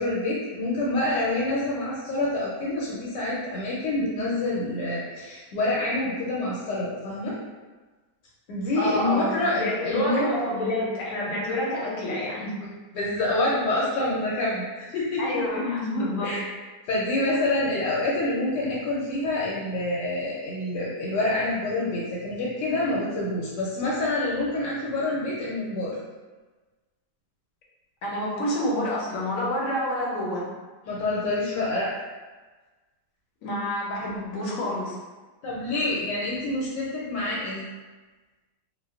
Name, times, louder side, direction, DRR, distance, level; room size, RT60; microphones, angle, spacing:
voice 1, 0.0-7.3 8.5-10.2 12.6-12.7 12.9-15.4 16.2-16.4 16.9-26.0 30.8-31.9 35.4-37.6, left 2 dB, 90° left, -6 dB, 1.2 m, -27 dB
voice 2, 8.8-12.5 15.2-16.4 28.0-30.5 33.4-35.0, left 1 dB, 65° left, -4 dB, 0.9 m, -28 dB
2.7 x 2.1 x 2.3 m, 1.3 s
omnidirectional pair, 1.8 m